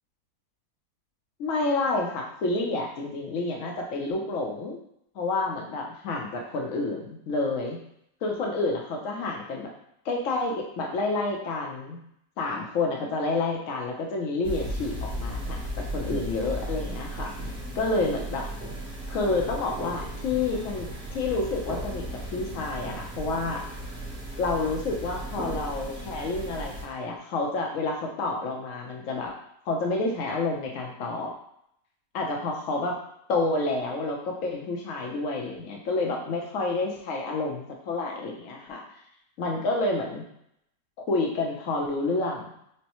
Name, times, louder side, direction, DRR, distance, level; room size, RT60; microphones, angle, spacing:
voice 1, 1.4-4.8 5.1-7.8 8.2-9.7 10.0-12.0 12.4-17.4 17.7-18.5 19.1-23.6 24.4-29.3 29.7-31.3 32.1-33.0 33.3-38.8 39.4-40.2 41.0-42.5, left 3 dB, 60° left, 0 dB, 1.0 m, -29 dB
sound 1, 14.4-26.8, right 1 dB, 5° right, 0.4 m, -35 dB
6.2 x 2.1 x 3.0 m, 0.75 s
omnidirectional pair, 1.8 m